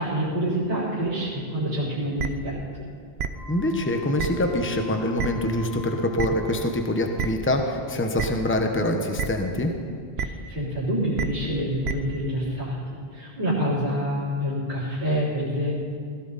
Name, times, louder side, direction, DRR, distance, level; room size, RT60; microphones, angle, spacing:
voice 1, 0.0-2.6 10.2-15.7, equal, 50° right, -12 dB, 3.7 m, -27 dB
sound 1, 2.2-2.3 3.2-3.3 4.2-4.3 5.2-5.3 6.2-6.3 7.2-7.3 8.2-8.3 9.2-9.3 10.2-10.3 11.2-11.3 11.8-11.9, right 8 dB, 85° right, 1.0 m, -26 dB
Wind instrument woodwind instrument, 3.3-7.5, left 2 dB, 70° left, 2.4 m, -46 dB
voice 2, 3.5-9.7, left 1 dB, 10° left, 4 dB, 1.0 m, -25 dB
17.5 x 16.0 x 4.1 m, 2.1 s
omnidirectional pair, 1.0 m